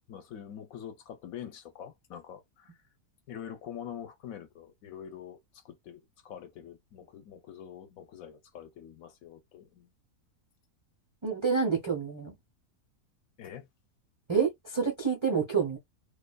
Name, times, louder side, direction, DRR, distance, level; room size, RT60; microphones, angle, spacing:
voice 1, 0.1-2.7 3.3-9.9 13.4-13.7, left 9 dB, 70° left, 1.0 m, -45 dB
voice 2, 11.2-12.3 14.3-15.8, right 6 dB, 40° right, 0.4 m, -28 dB
2.6 x 2.3 x 2.2 m
omnidirectional pair, 1.6 m